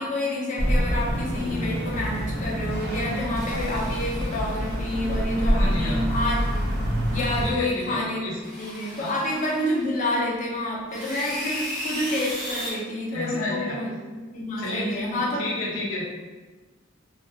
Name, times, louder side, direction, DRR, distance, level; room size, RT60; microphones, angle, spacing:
voice 1, 0.0-6.7 7.1-8.3 8.6-13.9 14.3-15.4, left 1 dB, 40° left, -3 dB, 0.5 m, -28 dB
sound 1, 0.6-7.5, equal, 55° right, 0.5 m, -26 dB
sound 2, 3.4-4.9 6.1-6.7 7.1-8.0 8.4-10.1 10.9-12.7, equal, ahead, 0.7 m, -36 dB
voice 2, 5.5-6.0 7.4-8.4 8.9-9.1 13.1-13.8 14.6-16.0, left 2 dB, 80° left, -3 dB, 0.6 m, -31 dB
2.3 x 2.1 x 2.6 m, 1.3 s
head